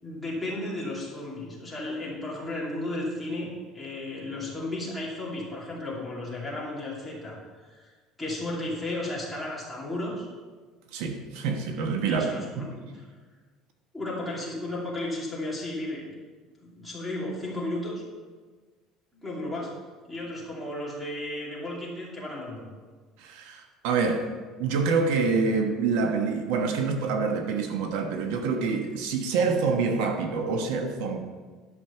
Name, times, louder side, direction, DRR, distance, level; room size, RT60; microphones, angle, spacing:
voice 1, 0.0-7.4 7.6-7.9 8.2-10.3 12.1-13.0 13.9-16.2 16.6-18.0 19.2-19.7 20.1-22.6, left 1 dB, ahead, -7 dB, 2.7 m, -34 dB
voice 2, 10.9-12.3 12.6-12.7 23.2-24.3 24.6-31.2, right 4 dB, 80° right, 5 dB, 1.1 m, -26 dB
11.0 x 6.1 x 6.9 m, 1.4 s
cardioid pair, 175°, 0 cm